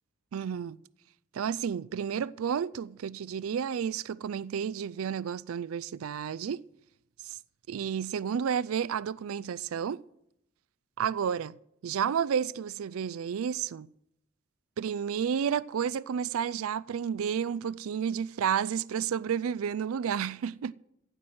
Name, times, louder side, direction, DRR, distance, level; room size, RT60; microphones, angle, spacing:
voice 1, 0.3-0.8 1.3-6.6 7.2-7.4 7.7-10.0 11.0-11.6 11.8-13.9 14.8-20.7, right 7 dB, 75° right, 0.4 m, -31 dB
15.5 x 6.1 x 7.8 m
head